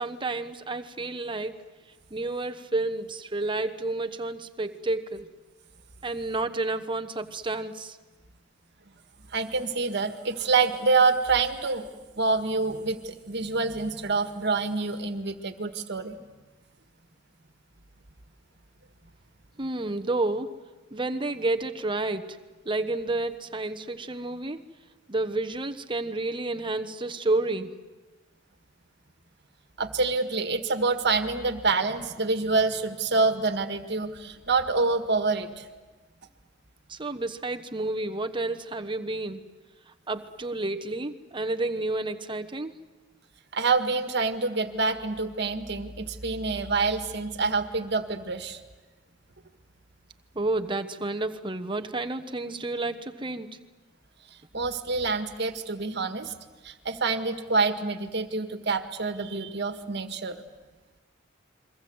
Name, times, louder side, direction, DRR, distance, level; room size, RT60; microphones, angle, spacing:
voice 1, 0.0-1.5 2.1-5.3 6.0-8.0 19.6-20.5 20.9-22.4 22.6-24.6 25.1-27.7 36.9-39.5 40.1-42.7 50.3-53.6, right 2 dB, 25° right, 7 dB, 1.1 m, -30 dB
voice 2, 9.3-11.9 12.2-16.2 29.8-35.6 43.5-48.6 54.5-56.3 56.6-60.4, right 4 dB, 60° right, 8 dB, 1.7 m, -27 dB
29.5 x 23.0 x 7.9 m, 1.2 s
head